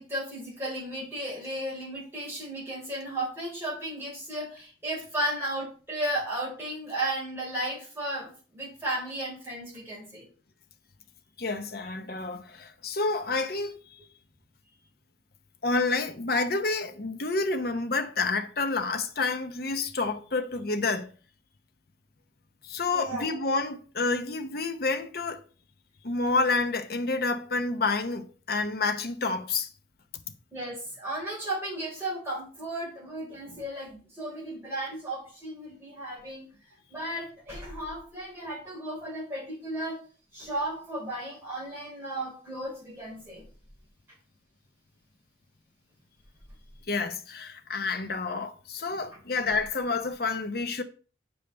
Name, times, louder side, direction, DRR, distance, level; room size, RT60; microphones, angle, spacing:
voice 1, 0.0-10.3 22.9-23.4 30.5-36.5 36.9-40.0 40.3-43.5 48.9-49.0, right 1 dB, 15° right, 4.5 m, -34 dB
voice 2, 11.4-13.8 15.6-21.1 22.6-25.4 26.0-29.7 46.9-50.8, left 3 dB, 50° left, 0.8 m, -29 dB
8.2 x 7.0 x 3.3 m
head